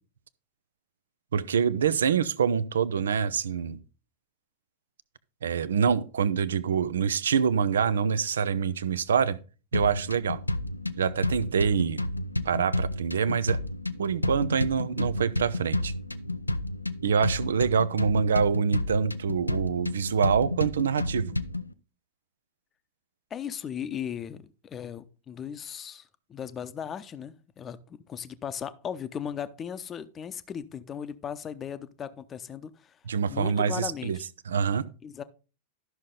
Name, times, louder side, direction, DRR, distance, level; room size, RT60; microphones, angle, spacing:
voice 1, 1.3-3.8 5.4-9.4 9.7-10.4 11.0-12.0 12.4-13.6 14.0-15.9 17.0-21.4 33.1-34.2 34.5-34.9, right 6 dB, 65° right, 0.6 m, -25 dB
sound 1, 9.7-21.7, left 1 dB, 85° left, 0.5 m, -31 dB
voice 2, 23.3-33.0 33.3-34.3 35.0-35.2, left 8 dB, 25° left, 0.8 m, -37 dB
12.5 x 6.3 x 3.8 m
figure-of-eight pair, 90°, 0 cm